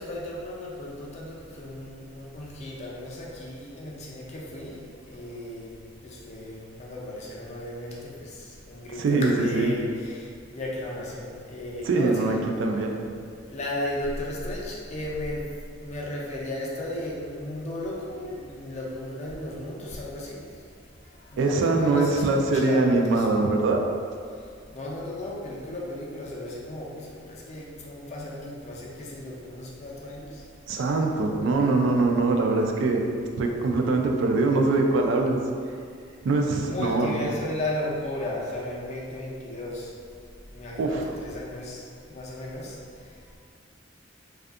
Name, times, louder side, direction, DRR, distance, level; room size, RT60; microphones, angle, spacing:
voice 1, 0.0-4.8 5.1-5.7 6.0-8.1 8.7-10.2 10.5-12.4 13.5-15.4 15.8-20.4 21.3-23.6 24.7-27.2 27.5-30.3 36.7-39.9 40.5-41.8 42.1-42.7, left 1 dB, 35° left, -4 dB, 0.4 m, -34 dB
voice 2, 9.0-9.7 11.8-12.9 21.4-23.8 30.7-33.0 33.4-35.4 36.2-37.2 40.8-41.0, right 3 dB, 75° right, 3 dB, 0.3 m, -23 dB
2.5 x 2.3 x 2.4 m, 2.2 s
head